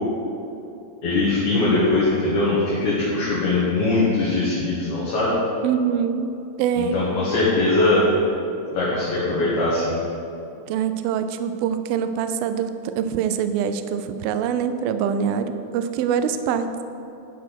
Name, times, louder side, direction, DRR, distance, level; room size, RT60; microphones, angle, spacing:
voice 1, 1.0-5.3 6.8-8.0 8.7-10.0, left 2 dB, 55° left, -8 dB, 2.5 m, -21 dB
voice 2, 5.6-6.3 6.6-7.0 10.7-16.7, right 8 dB, 90° right, 9 dB, 2.1 m, -24 dB
11.0 x 5.1 x 5.9 m, 2.7 s
omnidirectional pair, 4.9 m